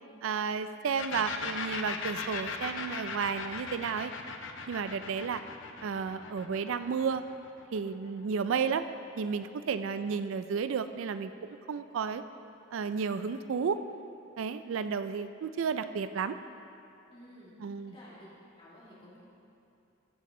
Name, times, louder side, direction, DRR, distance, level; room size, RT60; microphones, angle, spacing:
voice 1, 0.2-4.1 4.7-5.4 5.8-7.3 7.7-8.9 9.2-11.3 11.7-12.2 12.7-13.8 14.4-16.4 17.6-17.9, right 6 dB, 80° right, 11 dB, 0.4 m, -32 dB
sound 1, 1.0-8.5, left 5 dB, 70° left, 0.7 m, -39 dB
voice 2, 9.6-10.0 17.1-17.5 17.9-18.3 18.6-19.2, left 1 dB, 25° left, -7 dB, 2.3 m, -53 dB
14.0 x 7.4 x 3.8 m, 2.7 s
head